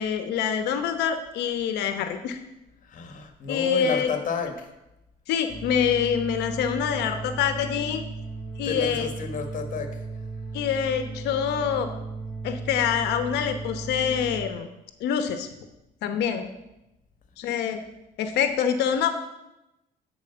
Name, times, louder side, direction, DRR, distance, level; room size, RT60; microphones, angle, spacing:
voice 1, 0.0-2.4 3.5-4.1 5.3-8.0 8.6-9.1 10.5-11.9 12.4-14.7 15.0-15.5 16.0-16.4 17.4-17.8 18.2-19.1, left 8 dB, 80° left, 8 dB, 1.1 m, -25 dB
voice 2, 2.8-4.7 8.6-10.0, left 5 dB, 50° left, 6 dB, 1.6 m, -31 dB
sound 1, 5.5-14.5, right 3 dB, 15° left, 1.5 m, -36 dB
11.0 x 4.8 x 6.9 m, 0.93 s
cardioid pair, 110°, 17 cm